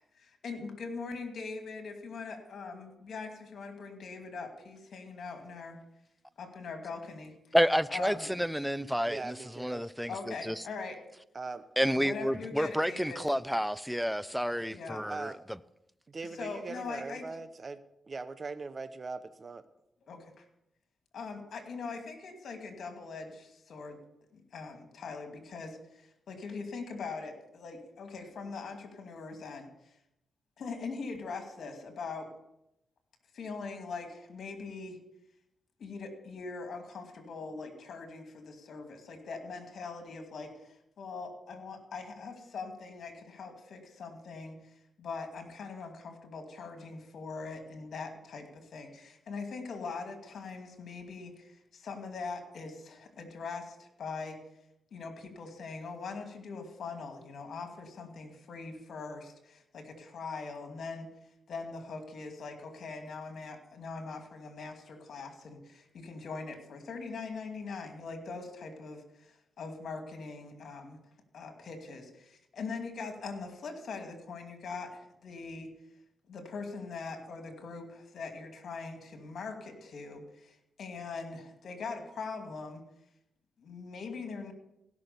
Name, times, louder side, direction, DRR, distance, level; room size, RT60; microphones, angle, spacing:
voice 1, 0.0-5.8 6.4-7.6 7.9-8.3 10.1-11.0 11.9-13.2 14.7-15.0 16.4-17.3 20.1-20.4 21.1-24.0 24.3-30.0 30.6-32.3 33.3-35.0 35.8-54.4 54.9-61.1 61.5-71.0 71.3-75.7 76.3-82.8 83.6-84.5, left 4 dB, 70° left, 2.4 m, -42 dB
voice 2, 7.5-10.6 11.8-15.3, equal, ahead, 0.5 m, -30 dB
voice 3, 8.8-9.8 11.3-11.6 15.1-15.4 16.1-17.8 18.1-19.6, right 3 dB, 45° right, 0.8 m, -41 dB
16.5 x 6.2 x 6.9 m
cardioid pair, 60°, 0 cm